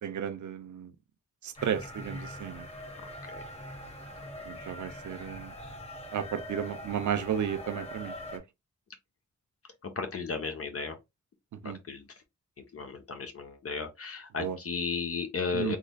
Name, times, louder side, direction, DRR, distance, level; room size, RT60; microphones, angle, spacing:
voice 1, 0.0-0.9 1.6-2.6 4.5-5.5 6.1-8.4 11.6-11.8 14.4-14.6 15.5-15.8, right 8 dB, 75° right, 0.6 m, -33 dB
sound 1, 1.6-8.4, left 1 dB, 20° left, 1.2 m, -43 dB
voice 2, 9.8-10.9 11.9-12.0 12.7-15.8, left 5 dB, 50° left, 0.7 m, -34 dB
3.7 x 3.1 x 2.2 m
cardioid pair, 80°, 30 cm